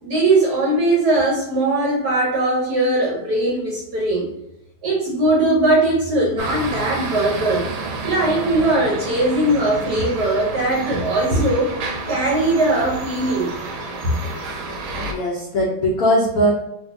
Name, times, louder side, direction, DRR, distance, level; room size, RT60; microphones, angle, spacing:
voice 1, 0.0-4.3 4.8-7.7 8.0-11.7 12.1-13.5 14.0-14.2, right 2 dB, 60° right, -4 dB, 1.1 m, -19 dB
sound 1, 6.4-15.1, right 3 dB, 75° right, 1.4 m, -30 dB
voice 2, 15.0-16.5, equal, 80° left, -3 dB, 0.8 m, -19 dB
3.3 x 2.7 x 2.7 m, 0.87 s
omnidirectional pair, 2.4 m